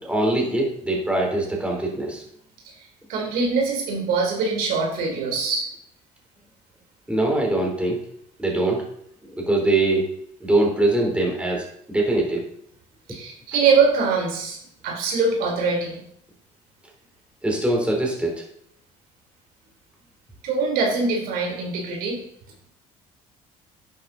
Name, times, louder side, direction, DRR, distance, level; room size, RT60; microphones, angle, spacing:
voice 1, 0.0-2.2 7.1-8.0 8.4-8.8 9.2-10.1 10.4-12.4 17.4-18.5, right 2 dB, 5° right, -1 dB, 3.9 m, -22 dB
voice 2, 2.8-5.7 13.1-14.6 14.8-16.0 20.4-22.2, right 4 dB, 80° right, 0 dB, 4.0 m, -23 dB
11.0 x 8.9 x 4.2 m, 0.68 s
cardioid pair, 95°, 15 cm